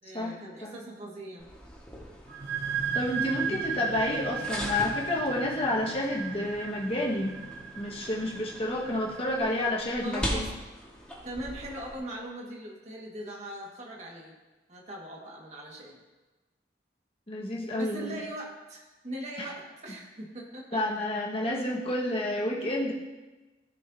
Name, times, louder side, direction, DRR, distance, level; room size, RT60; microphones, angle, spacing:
voice 1, 0.0-1.5 3.5-3.9 10.0-10.5 11.2-14.3 14.7-16.0 17.8-20.8, right 1 dB, 40° right, -2 dB, 2.0 m, -40 dB
sound 1, 1.4-11.9, equal, 5° left, 1.8 m, -41 dB
sound 2, 2.3-9.7, right 6 dB, 65° right, 1.0 m, -36 dB
voice 2, 2.9-7.4 7.8-10.5 17.3-18.2 19.4-19.5 20.7-22.9, left 1 dB, 30° left, -4 dB, 1.7 m, -30 dB
18.0 x 6.4 x 2.9 m, 1.2 s
head